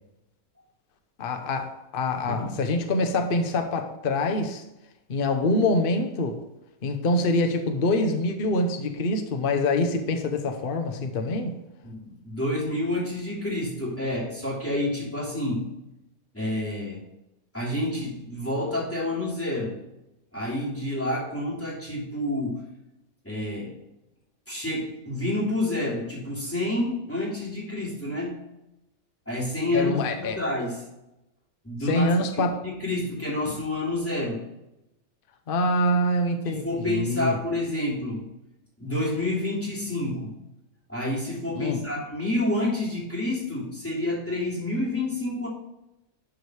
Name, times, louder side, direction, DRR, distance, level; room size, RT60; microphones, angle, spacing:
voice 1, 1.2-4.6 5.1-6.4 6.8-11.6 29.7-30.4 31.8-32.7 35.5-37.4 41.5-41.8, left 2 dB, 45° left, 1.0 m, -25 dB
voice 2, 11.8-15.7 16.3-17.0 17.5-19.8 20.3-22.6 23.2-23.7 24.5-28.4 29.3-30.9 31.6-34.4 36.4-38.3 38.8-40.3 40.9-45.5, left 1 dB, 10° left, 3.1 m, -29 dB
11.5 x 5.0 x 4.9 m
omnidirectional pair, 1.6 m